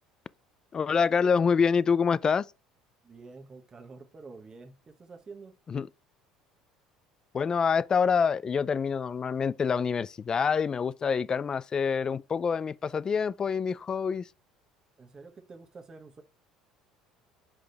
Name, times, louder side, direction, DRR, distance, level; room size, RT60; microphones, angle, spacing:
voice 1, 0.7-2.5 5.7-5.9 7.3-14.3, left 6 dB, 30° left, 0.4 m, -26 dB
voice 2, 3.0-5.6 15.0-16.2, right 4 dB, 30° right, 1.0 m, -48 dB
6.1 x 5.0 x 3.3 m
supercardioid pair, 85°, 2 cm